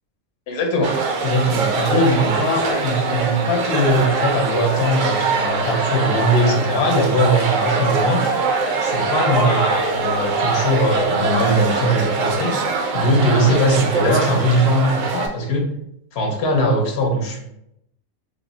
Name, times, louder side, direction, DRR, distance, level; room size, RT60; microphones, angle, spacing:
voice 1, 0.5-8.3 8.8-12.5 12.9-15.6 16.1-17.4, equal, 55° left, 0 dB, 0.8 m, -20 dB
sound 1, 0.8-15.3, right 4 dB, 70° right, 0.9 m, -22 dB
3.4 x 2.0 x 3.8 m, 0.78 s
omnidirectional pair, 1.5 m